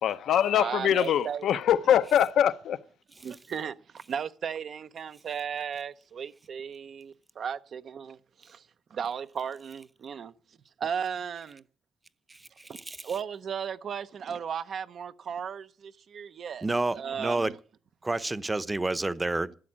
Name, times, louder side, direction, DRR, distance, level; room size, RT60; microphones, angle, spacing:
voice 1, 0.0-2.8, left 10 dB, 80° left, 0.7 m, -23 dB
voice 2, 0.5-1.6 3.2-3.7 4.1-10.3 10.8-11.6 12.7-12.8 13.0-17.6, right 7 dB, 65° right, 0.7 m, -35 dB
voice 3, 12.3-13.0 16.6-17.5 18.0-19.6, right 2 dB, 20° right, 0.8 m, -30 dB
12.5 x 7.2 x 8.7 m
cardioid pair, 85°, 0 cm